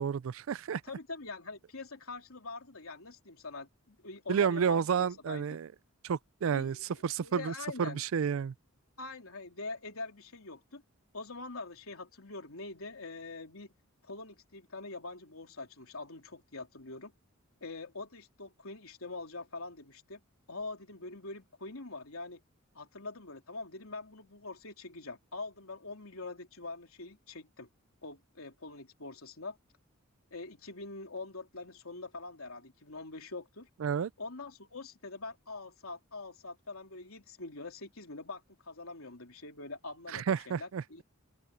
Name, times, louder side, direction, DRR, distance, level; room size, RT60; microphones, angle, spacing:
voice 1, 0.0-0.8 4.3-5.7 6.0-6.8 7.0-8.5 33.8-34.1 40.1-40.8, right 7 dB, 70° right, 0.4 m, -30 dB
voice 2, 0.8-5.5 6.5-8.0 9.0-10.8 11.1-13.7 14.0-17.1 17.6-20.2 20.5-22.4 22.7-27.7 28.0-29.6 30.3-33.7 34.2-41.0, left 3 dB, 80° left, 3.3 m, -44 dB
open air
head